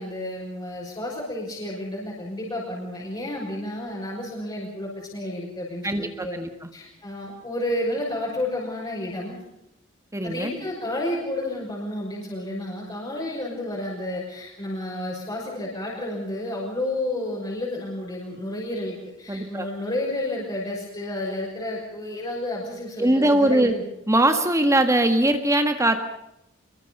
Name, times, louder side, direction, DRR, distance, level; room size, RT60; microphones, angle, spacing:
voice 1, 0.0-6.4 6.7-9.4 10.2-23.8, left 1 dB, 20° left, -5 dB, 6.3 m, -31 dB
voice 2, 5.8-6.7 10.1-10.5 19.3-19.7 23.0-23.7 24.1-26.0, right 1 dB, 15° right, 7 dB, 1.7 m, -21 dB
25.5 x 23.0 x 5.5 m, 0.84 s
head